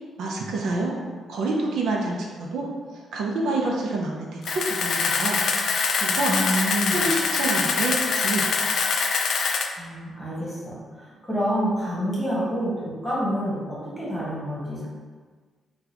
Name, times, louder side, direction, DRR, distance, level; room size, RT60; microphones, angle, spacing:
voice 1, 0.2-0.9 1.3-2.7 3.1-5.4 5.7-6.3 6.9-8.7, right 2 dB, 80° right, -2 dB, 0.5 m, -27 dB
Camera, 4.4-9.7, left 5 dB, 65° left, 0.3 m, -24 dB
voice 2, 6.3-7.0 9.8-14.9, equal, 5° left, -8 dB, 1.3 m, -28 dB
3.9 x 2.3 x 2.8 m, 1.5 s
cardioid pair, 100°, 0 cm